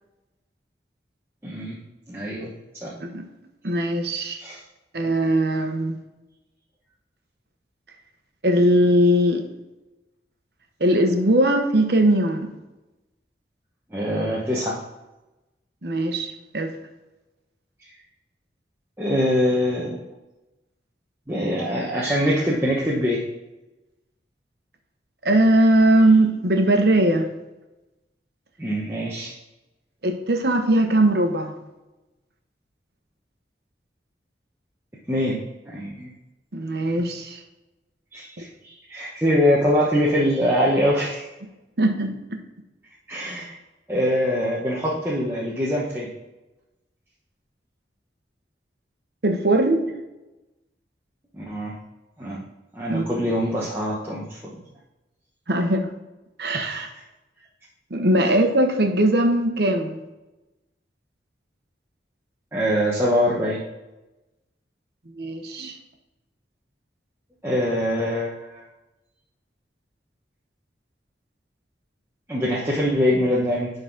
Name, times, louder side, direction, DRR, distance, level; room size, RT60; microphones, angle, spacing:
voice 1, 1.4-1.8 2.1-2.5 2.8-2.9 4.4-4.6 13.9-14.8 19.0-20.1 21.3-23.2 28.6-29.3 35.1-35.4 35.7-36.1 38.1-41.3 43.1-43.5 43.9-46.1 51.3-51.7 52.2-52.4 52.7-54.4 56.6-56.8 62.5-63.6 67.4-68.6 72.3-73.7, equal, 15° right, -6 dB, 1.0 m, -23 dB
voice 2, 3.6-4.4 4.9-6.0 8.4-9.5 10.8-12.5 15.8-16.7 25.2-27.3 30.0-31.6 36.5-37.4 41.8-42.4 49.2-49.9 52.9-53.1 55.5-55.9 56.4-56.9 57.9-60.0 65.1-65.8, right 1 dB, 65° right, 5 dB, 1.0 m, -20 dB
10.5 x 4.0 x 3.9 m, 1.0 s
head